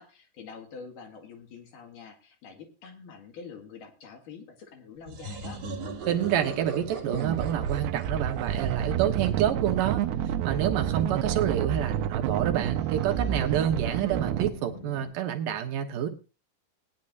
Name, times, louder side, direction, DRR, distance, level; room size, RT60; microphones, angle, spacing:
voice 1, 0.0-5.6, left 5 dB, 60° left, 3 dB, 3.1 m, -46 dB
sound 1, 5.0-9.6, right 4 dB, 50° right, 2.2 m, -39 dB
Boat Water vehicle, 6.0-15.1, left 2 dB, 40° left, 0.9 m, -48 dB
voice 2, 6.1-10.0 10.4-16.1, right 10 dB, 65° right, 5 dB, 2.5 m, -28 dB
sound 2, 7.1-14.5, right 10 dB, 80° right, 2.7 m, -29 dB
20.0 x 10.0 x 2.6 m, 0.32 s
omnidirectional pair, 4.6 m